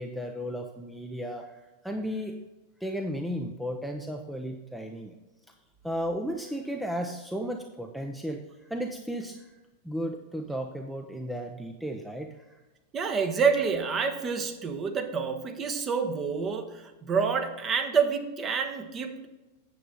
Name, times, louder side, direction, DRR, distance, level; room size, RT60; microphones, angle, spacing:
voice 1, 0.0-2.4 2.8-5.2 5.8-9.5 9.8-12.6, equal, ahead, 4 dB, 0.7 m, -34 dB
voice 2, 12.9-19.3, right 5 dB, 25° right, 5 dB, 1.2 m, -28 dB
9.1 x 7.4 x 3.9 m, 1.1 s
figure-of-eight pair, 90°, 0 cm